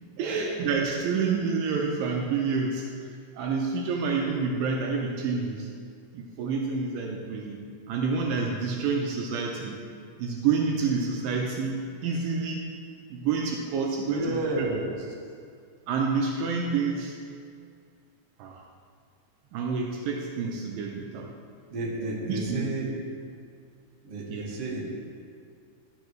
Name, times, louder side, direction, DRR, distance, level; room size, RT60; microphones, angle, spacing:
voice 1, 0.2-2.9 3.3-5.7 6.1-7.6 7.9-9.8 10.2-12.6 13.1-14.7 15.9-17.2 18.4-18.6 19.5-21.3 22.3-22.9 24.3-24.4, right 5 dB, 80° right, 0 dB, 2.4 m, -28 dB
voice 2, 14.0-14.9 21.7-22.9 24.0-24.8, right 2 dB, 50° right, -5 dB, 2.2 m, -31 dB
12.0 x 7.8 x 3.1 m, 2.2 s
omnidirectional pair, 4.0 m